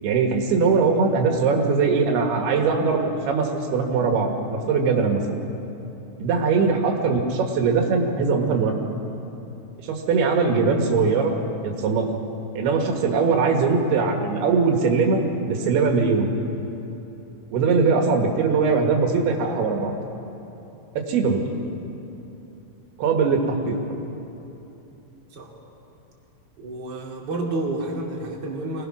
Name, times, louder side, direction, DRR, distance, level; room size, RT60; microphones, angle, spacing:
voice 1, 0.0-5.4 6.2-8.7 9.8-11.3 11.6-12.1 12.6-15.2 15.5-16.3 17.5-20.0 21.0-21.5 23.0-23.8, right 4 dB, 85° right, 2 dB, 3.5 m, -21 dB
voice 2, 26.6-28.9, right 2 dB, 30° right, -3 dB, 2.6 m, -30 dB
24.0 x 18.0 x 6.1 m, 2.9 s
omnidirectional pair, 4.4 m